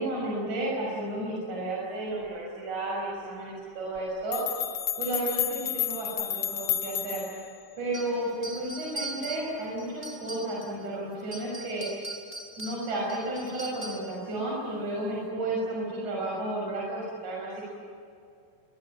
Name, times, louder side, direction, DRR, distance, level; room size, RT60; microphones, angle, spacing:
voice 1, 0.0-4.4 5.0-7.2 7.8-11.9 12.6-17.7, right 1 dB, 55° right, -4 dB, 7.7 m, -32 dB
sound 1, 4.0-4.1 4.3-7.5, left 10 dB, 80° left, 1.2 m, -31 dB
sound 2, 7.9-10.8 11.2-14.2, right 2 dB, 10° right, 4.7 m, -40 dB
26.5 x 23.0 x 8.6 m, 2.4 s
omnidirectional pair, 4.1 m